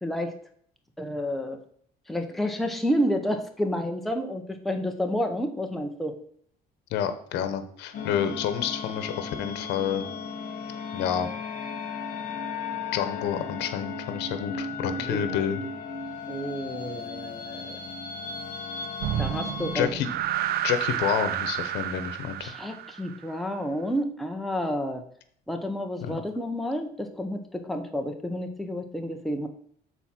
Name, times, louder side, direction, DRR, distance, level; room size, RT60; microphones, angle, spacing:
voice 1, 0.0-0.3 1.0-1.6 2.1-6.2 15.0-15.6 16.3-17.7 19.2-19.9 22.4-25.0 25.5-29.5, equal, ahead, 4 dB, 0.9 m, -30 dB
voice 2, 6.9-10.0 10.9-11.3 12.9-15.6 19.7-20.1 20.6-22.5 26.0-26.2, left 9 dB, 85° left, 11 dB, 0.9 m, -29 dB
sound 1, 7.9-19.8, left 5 dB, 55° left, 1.6 m, -35 dB
sound 2, 19.0-23.4, right 11 dB, 70° right, 0.5 m, -30 dB
7.0 x 4.3 x 5.9 m, 0.62 s
cardioid pair, 110°, 17 cm